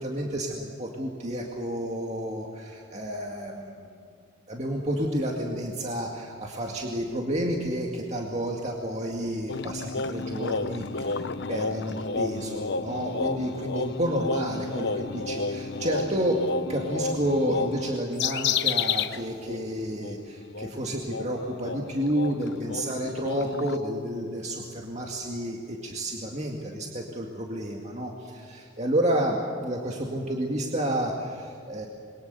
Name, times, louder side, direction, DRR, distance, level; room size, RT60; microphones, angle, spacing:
voice 1, 0.0-3.9 4.5-16.4 16.7-31.9, right 1 dB, 35° right, 0 dB, 2.1 m, -30 dB
sound 1, 9.5-19.2 19.5-19.6 20.0-23.8, left 4 dB, 55° left, 0.8 m, -31 dB
27.5 x 22.5 x 7.0 m, 2.3 s
head